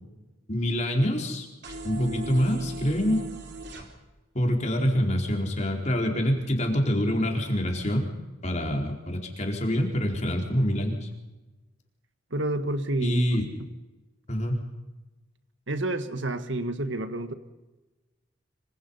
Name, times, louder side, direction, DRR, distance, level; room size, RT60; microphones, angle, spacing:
voice 1, 0.5-1.5 1.8-3.2 4.3-8.0 8.4-11.1 13.0-13.5 14.3-14.6, equal, 35° left, 2 dB, 4.3 m, -26 dB
sound 1, 1.6-3.8, right 1 dB, 55° right, 4.1 m, -38 dB
voice 2, 12.3-13.2 15.7-17.3, right 1 dB, 70° right, 9 dB, 1.7 m, -29 dB
26.0 x 25.0 x 5.7 m, 1.1 s
head